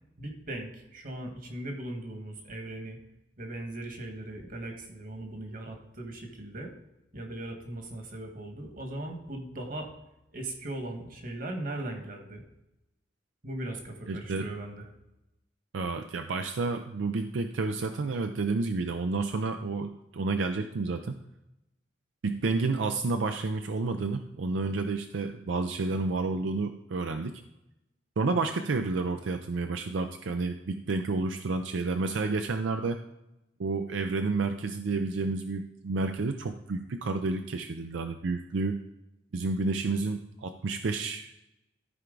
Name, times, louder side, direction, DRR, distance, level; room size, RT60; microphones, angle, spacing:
voice 1, 0.2-3.0 3.4-6.7 7.1-9.9 10.3-12.4 13.4-14.8, right 1 dB, 45° right, 3 dB, 1.5 m, -38 dB
voice 2, 14.1-14.5 15.7-21.2 22.2-27.3 28.2-33.0 33.6-38.8 39.3-41.3, right 3 dB, 80° right, 7 dB, 0.5 m, -30 dB
13.5 x 4.6 x 3.8 m, 0.91 s
head